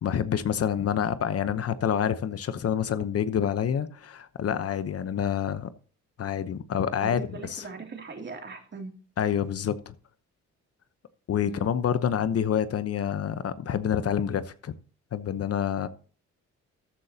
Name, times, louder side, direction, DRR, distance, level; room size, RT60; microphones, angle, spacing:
voice 1, 0.0-5.7 6.2-7.6 9.2-9.9 11.3-14.7 15.1-15.9, left 8 dB, 50° left, 0.9 m, -27 dB
voice 2, 7.0-8.9 11.5-11.7, right 4 dB, 35° right, 2.9 m, -40 dB
13.5 x 10.0 x 2.8 m
cardioid pair, 90°, 30 cm